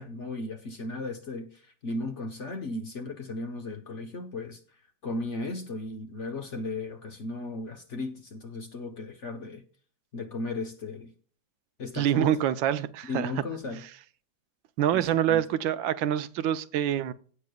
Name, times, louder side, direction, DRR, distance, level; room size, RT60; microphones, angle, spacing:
voice 1, 0.0-4.6 5.0-9.6 10.1-11.1 11.8-12.3 13.1-13.8 14.9-15.0 15.3-15.4, left 2 dB, 45° left, 1.1 m, -36 dB
voice 2, 11.9-13.3 14.8-17.1, right 10 dB, 80° right, 1.4 m, -26 dB
17.0 x 6.7 x 2.3 m
omnidirectional pair, 2.1 m